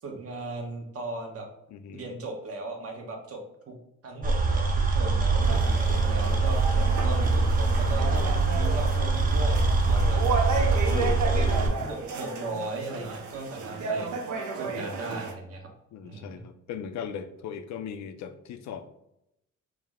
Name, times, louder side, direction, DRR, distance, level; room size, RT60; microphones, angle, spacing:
voice 1, 0.0-1.5 1.9-3.7 4.0-5.7 6.0-6.7 7.0-8.3 8.5-9.6 9.9-10.9 11.3-14.1 14.5-15.7 16.0-16.4, right 2 dB, 50° right, 2 dB, 1.0 m, -37 dB
voice 2, 1.7-2.2 10.0-10.1 10.9-11.2 11.5-11.7 15.9-18.9, left 8 dB, 65° left, 10 dB, 0.5 m, -38 dB
sound 1, 4.2-11.7, right 3 dB, 30° right, 0.7 m, -23 dB
sound 2, 5.4-15.3, right 5 dB, 70° right, 0.7 m, -33 dB
4.7 x 2.1 x 3.5 m, 0.80 s
cardioid pair, 90°, 30 cm